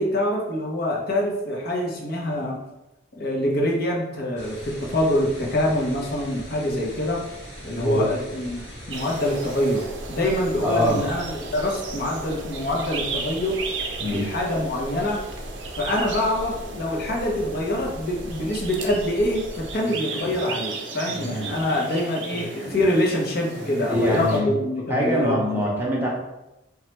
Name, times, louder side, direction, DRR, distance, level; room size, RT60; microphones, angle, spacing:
voice 1, 0.0-2.6 3.1-7.2 7.6-8.6 8.9-13.6 14.1-15.2 15.8-25.7, left 1 dB, 55° left, -1 dB, 0.7 m, -25 dB
sound 1, 4.4-24.2, equal, 80° left, 1.3 m, -40 dB
sound 2, 8.9-24.4, right 4 dB, 70° right, 0.5 m, -36 dB
voice 2, 10.6-11.0 14.0-14.2 21.2-21.4 23.9-24.5 24.9-26.1, equal, 10° right, -4 dB, 0.7 m, -23 dB
3.1 x 2.2 x 3.0 m, 0.95 s
head